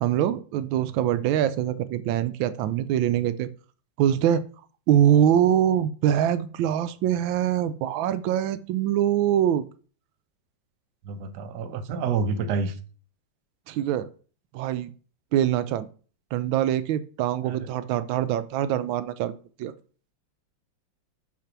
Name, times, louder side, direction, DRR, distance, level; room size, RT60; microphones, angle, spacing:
voice 1, 0.0-3.5 4.0-4.4 4.9-9.7 13.7-14.1 14.5-14.9 15.3-15.9 16.3-19.7, right 10 dB, 85° right, 1.4 m, -24 dB
voice 2, 11.0-12.7 17.5-17.7, right 5 dB, 65° right, 1.3 m, -28 dB
6.0 x 5.8 x 5.9 m
omnidirectional pair, 2.1 m